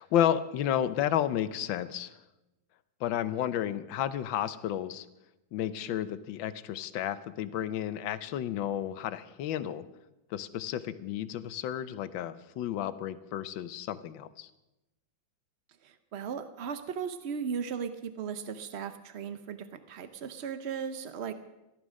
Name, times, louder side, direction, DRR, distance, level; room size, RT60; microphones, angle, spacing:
voice 1, 0.0-2.1 3.0-5.1 5.5-9.8 10.3-14.5, left 10 dB, 80° left, 14 dB, 1.5 m, -32 dB
voice 2, 15.8-21.3, right 7 dB, 70° right, 10 dB, 0.6 m, -37 dB
15.0 x 12.0 x 6.3 m, 0.96 s
omnidirectional pair, 2.1 m